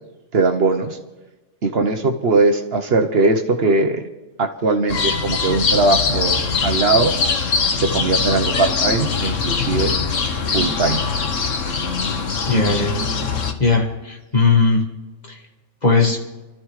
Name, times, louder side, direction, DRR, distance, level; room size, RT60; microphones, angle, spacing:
voice 1, 0.3-1.0 1.6-4.0 4.4-7.1 7.7-9.9 10.5-11.0, right 3 dB, 55° right, 5 dB, 1.1 m, -19 dB
sound 1, 4.9-13.5, left 5 dB, 90° left, 1.5 m, -22 dB
voice 2, 12.5-13.0 13.6-14.8 15.8-16.2, left 4 dB, 35° left, 2 dB, 1.8 m, -17 dB
28.0 x 13.5 x 3.2 m, 1.1 s
omnidirectional pair, 1.3 m